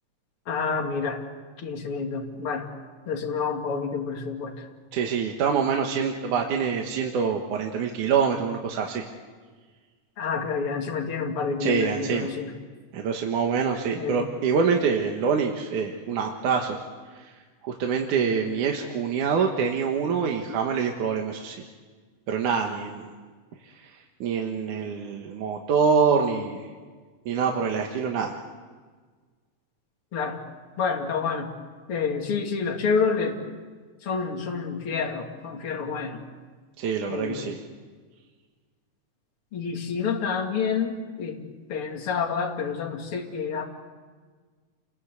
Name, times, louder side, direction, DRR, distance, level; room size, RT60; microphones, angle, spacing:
voice 1, 0.5-1.2 1.6-2.7 3.1-4.7 10.2-12.5 14.0-14.3 30.1-30.4 30.8-31.5 31.9-33.4 34.0-36.2 37.1-37.5 39.5-43.6, left 5 dB, 45° left, 1 dB, 3.1 m, -28 dB
voice 2, 4.9-9.1 11.6-12.3 12.9-16.8 17.1-17.3 17.6-21.7 22.3-23.1 23.6-23.9 24.2-26.7 27.3-28.4 36.8-37.6, right 6 dB, 75° right, 2 dB, 2.9 m, -25 dB
29.0 x 21.5 x 8.3 m, 1.5 s
omnidirectional pair, 3.6 m